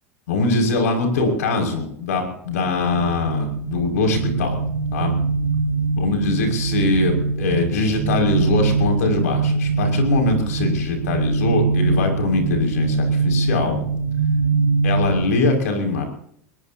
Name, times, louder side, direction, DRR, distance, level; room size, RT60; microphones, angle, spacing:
voice 1, 0.3-4.6 4.9-5.2 6.0-13.8 14.8-16.0, left 3 dB, 75° left, 4 dB, 6.0 m, -22 dB
sound 1, 2.6-15.4, right 4 dB, 50° right, 2.7 m, -23 dB
22.0 x 20.5 x 2.8 m, 0.67 s
hypercardioid pair, 95°, 8 cm